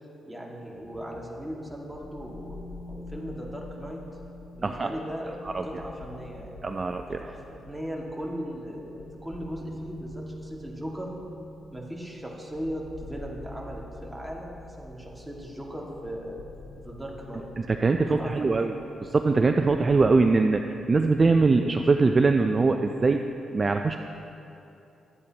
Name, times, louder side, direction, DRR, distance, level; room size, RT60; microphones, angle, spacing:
voice 1, 0.3-2.6 2.9-4.0 4.5-6.5 7.1-11.1 11.7-16.4 16.8-17.5 18.1-18.7, equal, 5° right, -3 dB, 1.9 m, -38 dB
sound 1, 0.8-20.2, left 1 dB, 35° left, 1.8 m, -46 dB
voice 2, 6.6-7.2 17.7-18.7 19.1-23.3 23.5-24.0, right 3 dB, 30° right, 6 dB, 0.4 m, -22 dB
23.0 x 8.3 x 2.9 m, 2.8 s
cardioid pair, 110°, 0 cm